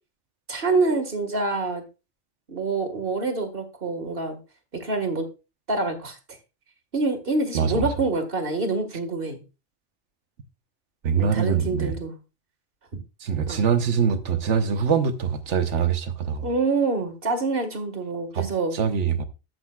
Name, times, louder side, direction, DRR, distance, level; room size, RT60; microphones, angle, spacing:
voice 1, 0.5-1.8 2.5-4.4 4.7-5.3 5.7-6.2 6.9-9.4 11.2-12.2 13.5-13.6 16.4-18.7, right 3 dB, 50° right, 1.9 m, -26 dB
voice 2, 7.5-7.9 11.0-11.9 13.2-16.5 18.3-18.4 18.7-19.2, right 6 dB, 85° right, 1.3 m, -23 dB
12.0 x 8.0 x 2.3 m
omnidirectional pair, 1.2 m